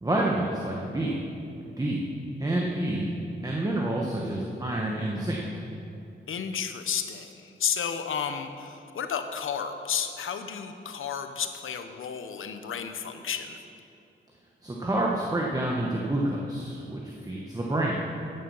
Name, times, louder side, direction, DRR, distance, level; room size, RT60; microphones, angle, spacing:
voice 1, 0.0-1.2 1.8-2.1 2.4-3.1 3.4-5.4 14.6-18.0, right 1 dB, 20° right, -2 dB, 1.2 m, -28 dB
voice 2, 6.3-13.6, left 7 dB, 90° left, 8 dB, 0.9 m, -32 dB
14.5 x 9.2 x 5.5 m, 2.7 s
wide cardioid pair, 120°, 20 cm